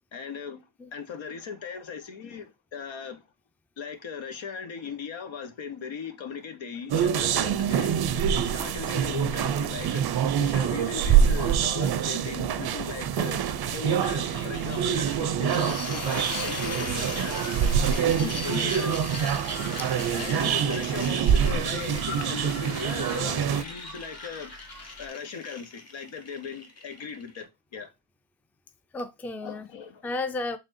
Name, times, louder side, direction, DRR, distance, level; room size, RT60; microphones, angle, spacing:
voice 1, 0.1-0.6 0.9-3.2 3.8-8.0 8.4-13.4 13.7-17.4 17.9-19.1 20.1-24.5 25.0-27.9 29.4-30.1, left 6 dB, 70° left, 1.0 m, -38 dB
sound 1, 6.9-23.6, right 8 dB, 50° right, 0.5 m, -25 dB
sound 2, 13.5-25.1, left 2 dB, 50° left, 1.9 m, -43 dB
sound 3, 15.5-27.4, left 2 dB, 30° left, 1.1 m, -39 dB
voice 2, 19.8-20.5 28.9-29.7 30.0-30.6, left 2 dB, 5° left, 0.4 m, -34 dB
4.2 x 3.3 x 2.5 m
cardioid pair, 85°, 48 cm